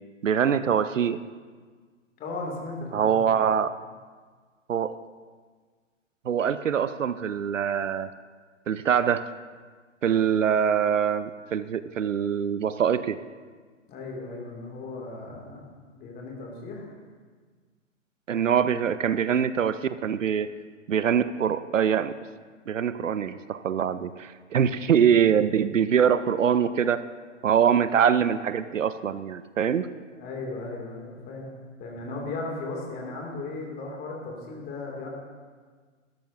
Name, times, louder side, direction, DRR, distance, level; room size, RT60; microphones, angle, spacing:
voice 1, 0.2-1.2 2.9-3.7 4.7-4.9 6.2-8.1 8.7-9.2 10.0-13.2 18.3-20.5 20.9-22.1 22.7-27.0 27.4-29.9, right 8 dB, 75° right, 13 dB, 0.6 m, -24 dB
voice 2, 2.2-3.4 13.9-15.7 16.0-16.9 30.2-31.5 31.8-35.1, left 3 dB, 25° left, -1 dB, 2.9 m, -36 dB
17.0 x 13.0 x 2.8 m, 1.5 s
figure-of-eight pair, 115°, 38 cm